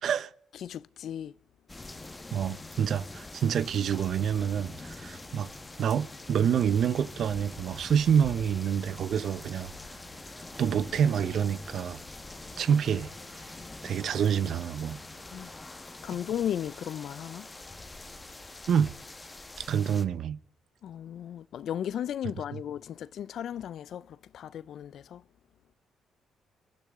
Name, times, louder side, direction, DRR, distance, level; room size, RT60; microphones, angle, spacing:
voice 1, 0.0-0.3 2.3-5.5 5.8-9.7 10.6-12.0 12.6-13.5 13.8-15.0 18.7-19.0 19.6-20.4, right 8 dB, 65° right, 0.7 m, -27 dB
voice 2, 0.5-1.4 15.3-15.5 16.0-17.5 20.8-25.2, left 10 dB, 70° left, 0.5 m, -35 dB
sound 1, 1.7-20.0, left 2 dB, 20° left, 1.4 m, -45 dB
sound 2, 2.4-15.5, right 1 dB, 25° right, 5.0 m, -57 dB
27.5 x 12.5 x 3.7 m
cardioid pair, 90°, 0 cm